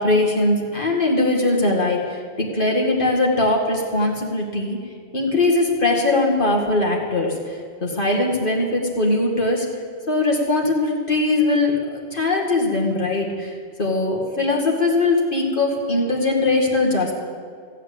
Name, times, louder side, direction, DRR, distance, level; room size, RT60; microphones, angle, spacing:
voice 1, 0.0-4.8 5.1-9.7 10.1-17.1, left 2 dB, 50° left, 0 dB, 2.1 m, -21 dB
15.5 x 8.0 x 7.6 m, 2.1 s
omnidirectional pair, 1.1 m